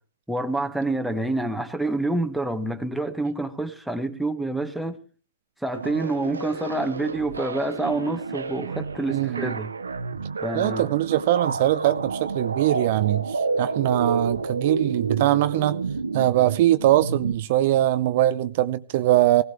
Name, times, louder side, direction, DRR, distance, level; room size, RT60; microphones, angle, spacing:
voice 1, 0.3-5.0 5.6-9.7 10.4-10.9, right 2 dB, ahead, 1.4 m, -27 dB
sound 1, 5.7-17.3, right 4 dB, 85° right, 1.1 m, -30 dB
voice 2, 9.1-9.5 10.5-15.8 16.1-19.4, right 14 dB, 50° right, 0.6 m, -22 dB
17.5 x 16.0 x 3.4 m
hypercardioid pair, 120°, 0 cm